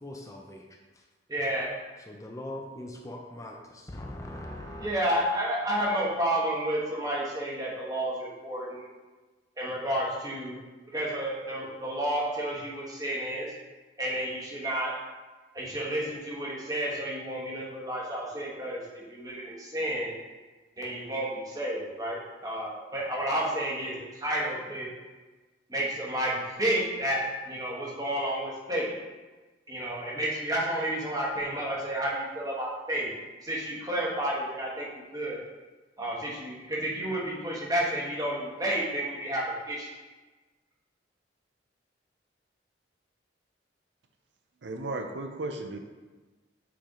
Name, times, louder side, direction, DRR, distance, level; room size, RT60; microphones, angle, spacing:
voice 1, 0.0-1.0 2.1-4.9, left 1 dB, 20° left, 1 dB, 0.5 m, -41 dB
voice 2, 1.3-1.7 4.8-8.9 9.6-10.6 10.9-13.5 14.0-14.9 15.5-20.1 20.8-23.9 24.2-24.9 25.7-28.9 29.7-33.1 33.4-35.4 36.0-39.9, right 1 dB, 20° right, -4 dB, 1.2 m, -31 dB
voice 3, 44.6-45.8, right 2 dB, 75° right, 5 dB, 0.5 m, -35 dB
7.7 x 3.4 x 3.7 m, 1.3 s
head